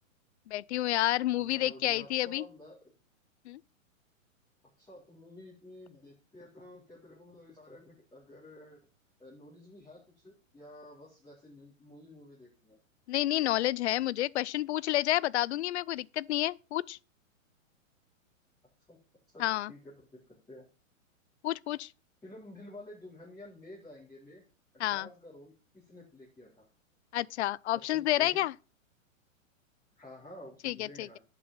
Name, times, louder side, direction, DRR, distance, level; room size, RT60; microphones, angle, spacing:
voice 1, 0.5-2.5 3.5-3.6 13.1-17.0 19.4-19.7 21.4-21.9 24.8-25.1 27.1-28.5 30.6-31.1, left 15 dB, 55° left, 0.5 m, -30 dB
voice 2, 1.4-2.8 4.8-8.8 9.2-12.8 18.9-19.0 19.3-19.4 19.7-20.7 22.2-24.4 24.7-26.6 27.7-28.4 29.9-31.2, left 1 dB, 10° left, 3.9 m, -51 dB
11.0 x 5.7 x 5.6 m
hypercardioid pair, 140°, 40 cm